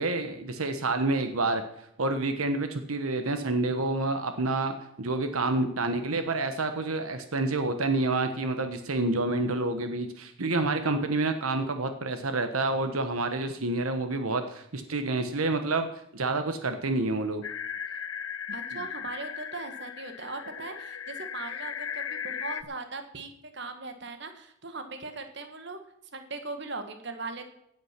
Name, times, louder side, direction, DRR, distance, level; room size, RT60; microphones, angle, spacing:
voice 1, 0.0-1.6 2.0-17.4 18.7-18.8, right 2 dB, 90° right, 8 dB, 1.2 m, -28 dB
sound 1, 17.4-22.6, left 8 dB, 85° left, 0.8 m, -37 dB
voice 2, 18.5-25.8 26.1-27.4, right 3 dB, 55° right, 7 dB, 1.7 m, -39 dB
16.0 x 9.0 x 5.9 m, 0.77 s
head